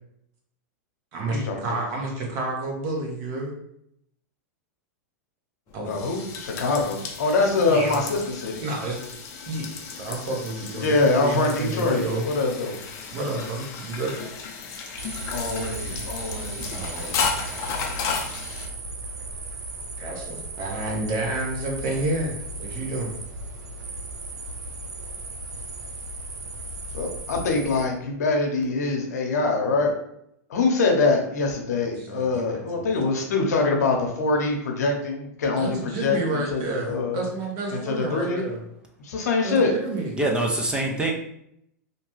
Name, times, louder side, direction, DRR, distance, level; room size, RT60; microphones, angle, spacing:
voice 1, 1.1-3.5 5.7-6.0 7.6-8.0 8.6-9.0 9.5-12.3 13.1-14.1 16.7-17.3 20.0-23.1 32.0-32.9 35.6-38.6 39.4-40.2, right 2 dB, 45° right, 0 dB, 1.0 m, -30 dB
sound 1, 5.7-18.7, left 5 dB, 40° left, 0.6 m, -34 dB
voice 2, 5.8-8.6 10.8-12.7 15.3-16.8 26.9-29.9 30.5-37.2 37.9-38.4 39.0-39.7, left 3 dB, 80° left, 1 dB, 0.8 m, -24 dB
sound 2, 15.0-27.9, right 2 dB, 90° right, 0.6 m, -36 dB
voice 3, 40.2-41.1, right 1 dB, 10° right, 0 dB, 0.4 m, -24 dB
2.8 x 2.2 x 3.1 m, 0.74 s
hypercardioid pair, 125°, 9 cm